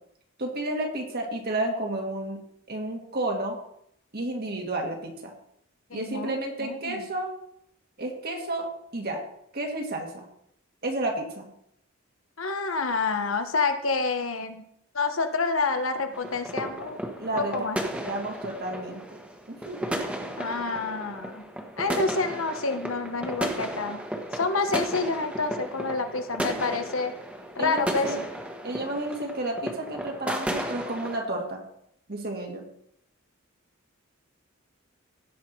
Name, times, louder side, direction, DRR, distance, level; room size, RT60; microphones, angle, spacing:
voice 1, 0.4-2.4 2.7-3.6 4.1-5.3 5.9-7.3 8.0-9.2 9.5-10.2 10.8-11.5 17.2-17.5 17.8-19.0 19.5-19.8 20.2-20.4 27.6-28.3 28.6-31.6 32.1-32.6, right 1 dB, 50° right, 1 dB, 2.3 m, -31 dB
voice 2, 5.9-7.0 12.4-14.7 14.9-17.0 17.4-17.8 20.4-21.4 21.8-24.0 24.3-27.2 27.5-28.1, left 4 dB, 75° left, 7 dB, 1.2 m, -28 dB
sound 1, 16.1-31.2, right 1 dB, 5° right, 1.3 m, -34 dB
16.5 x 5.9 x 4.7 m, 0.74 s
head